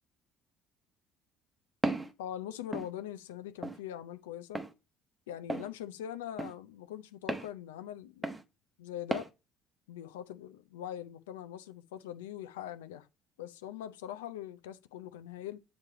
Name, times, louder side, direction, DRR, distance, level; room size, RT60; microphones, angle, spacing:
Walk footsteps, 1.8-2.1 2.7-2.9 3.6-3.8 4.5-4.7 5.5-5.7 6.4-6.5 7.3-7.5 8.2-8.4 9.1-9.3, right 2 dB, 15° right, 0.9 m, -34 dB
voice 1, 2.2-4.6 5.3-8.4 8.8-9.3 9.9-13.1 13.4-15.6, left 11 dB, 90° left, 0.5 m, -42 dB
7.3 x 3.1 x 4.6 m
hypercardioid pair, 65°, 0 cm